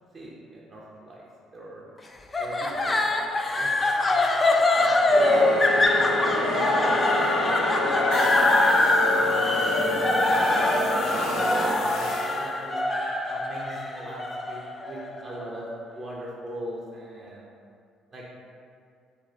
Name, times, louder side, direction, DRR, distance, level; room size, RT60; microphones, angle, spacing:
voice 1, 0.1-1.2 1.5-1.8 2.4-5.8 6.6-8.3 9.1-12.8 13.3-17.5 18.1-18.4, right 1 dB, 35° right, -5 dB, 0.6 m, -41 dB
sound 1, 2.3-15.5, left 2 dB, 25° left, 0.3 m, -23 dB
sound 2, 5.1-11.8, left 2 dB, 80° right, 0.9 m, -28 dB
sound 3, 8.1-12.5, right 1 dB, 70° left, 0.7 m, -35 dB
3.2 x 2.3 x 4.0 m, 2.3 s
figure-of-eight pair, 50°, 0 cm